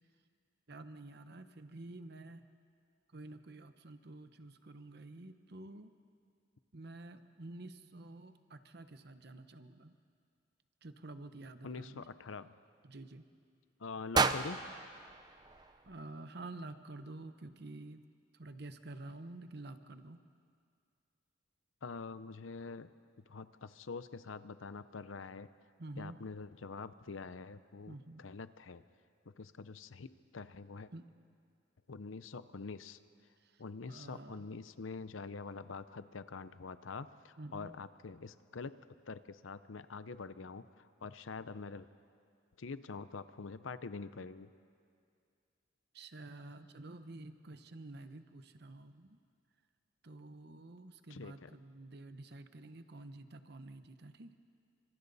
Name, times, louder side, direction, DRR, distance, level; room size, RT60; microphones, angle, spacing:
voice 1, 0.7-2.5 3.1-5.9 6.7-9.9 10.8-12.0 12.8-13.2 15.8-18.0 18.3-20.2 25.8-26.2 27.9-28.3 30.9-31.1 33.4-33.6 33.9-34.5 37.4-37.7 45.9-49.2 50.0-54.3, right 2 dB, 55° right, 9 dB, 1.0 m, -49 dB
voice 2, 11.6-12.5 13.8-14.6 21.8-22.9 23.3-25.5 26.0-28.8 29.4-30.9 31.9-33.0 33.6-38.7 39.1-41.9 42.6-44.5 51.1-51.5, left 4 dB, 90° left, 13 dB, 0.7 m, -45 dB
sound 1, 14.1-16.3, right 4 dB, 20° right, 0.6 m, -34 dB
29.5 x 25.5 x 4.1 m, 2.3 s
head